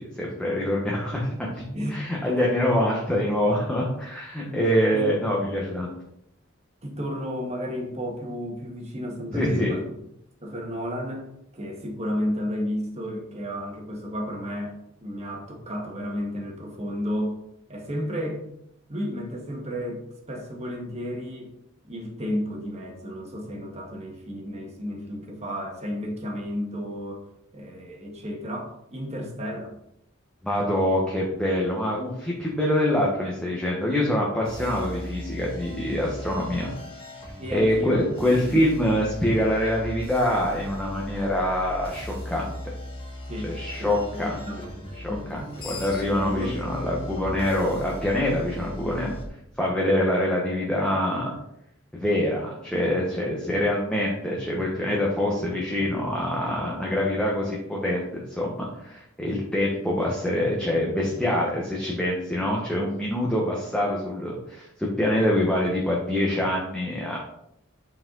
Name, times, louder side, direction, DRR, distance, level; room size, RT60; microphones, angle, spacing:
voice 1, 0.0-1.6 1.9-5.9 9.3-9.8 30.4-36.7 37.5-42.4 43.4-44.4 44.9-45.4 45.6-49.1 49.6-51.3 51.9-67.2, left 1 dB, 5° left, -4 dB, 1.2 m, -25 dB
voice 2, 1.7-2.1 4.4-5.1 6.8-9.8 10.4-11.3 11.5-17.4 17.7-18.4 18.9-21.5 21.8-27.3 27.5-29.8 37.4-38.6 43.3-45.3 46.0-46.6 54.6-54.7, equal, 35° right, 1 dB, 1.6 m, -32 dB
sound 1, 34.5-49.3, left 1 dB, 30° left, 2.1 m, -38 dB
Screech, 45.2-48.5, left 2 dB, 50° left, 1.2 m, -41 dB
8.6 x 4.9 x 3.9 m, 0.77 s
head